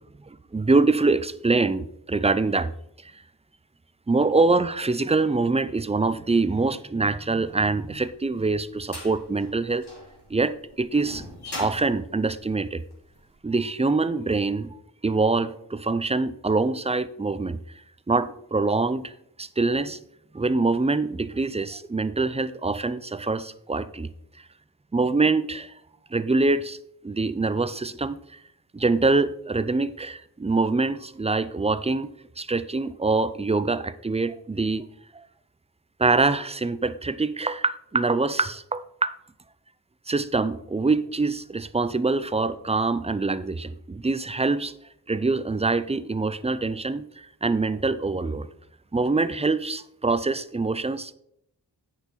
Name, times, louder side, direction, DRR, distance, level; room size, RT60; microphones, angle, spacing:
voice 1, 0.3-2.7 4.1-9.9 10.3-11.2 11.6-12.8 13.4-14.8 15.0-17.6 18.1-19.1 19.4-20.0 20.3-24.1 24.9-25.7 26.1-26.8 27.0-28.2 28.7-32.1 32.4-34.9 35.1-35.2 36.0-39.1 40.1-44.7 45.1-48.5 48.9-51.1, right 3 dB, 15° right, 14 dB, 0.4 m, -24 dB
sound 1, 7.8-13.2, left 1 dB, 70° left, 3.0 m, -41 dB
8.7 x 5.7 x 4.1 m, 0.75 s
wide cardioid pair, 65°, 41 cm